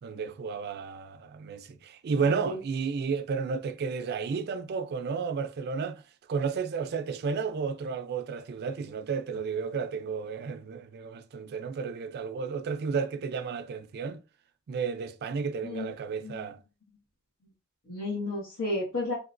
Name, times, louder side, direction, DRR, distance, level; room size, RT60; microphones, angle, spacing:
voice 1, 0.0-6.0 6.3-14.2 14.7-16.6, right 5 dB, 50° right, 0.3 m, -32 dB
voice 2, 2.2-2.5 15.6-15.9 16.2-16.5 17.9-19.1, left 2 dB, 80° left, 1.3 m, -33 dB
3.2 x 2.9 x 2.4 m
head